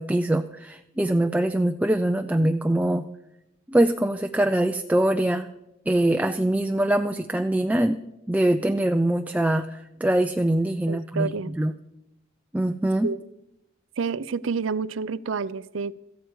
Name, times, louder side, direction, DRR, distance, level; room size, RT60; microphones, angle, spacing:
voice 1, 0.0-3.0 3.7-5.5 5.9-8.0 8.3-11.7 12.5-13.1, right 1 dB, 5° right, 6 dB, 0.5 m, -23 dB
voice 2, 10.9-11.5 13.0-13.2 14.0-16.0, right 5 dB, 70° right, 17 dB, 0.6 m, -29 dB
17.5 x 14.5 x 4.7 m, 0.91 s
head